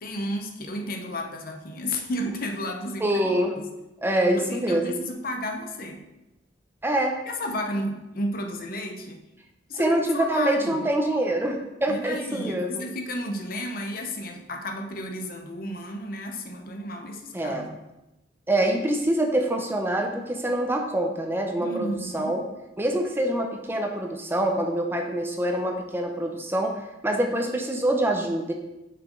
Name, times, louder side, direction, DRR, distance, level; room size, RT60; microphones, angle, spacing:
voice 1, 0.0-3.2 3.6-3.7 4.4-6.0 7.3-9.3 9.7-10.8 11.9-17.8 21.6-22.4, left 1 dB, 55° left, 4 dB, 0.8 m, -32 dB
voice 2, 3.0-3.6 4.0-5.0 6.8-7.2 9.7-12.8 17.3-17.7 18.5-22.4 22.8-28.5, right 1 dB, 15° right, 3 dB, 0.6 m, -25 dB
6.0 x 5.9 x 3.8 m, 0.96 s
head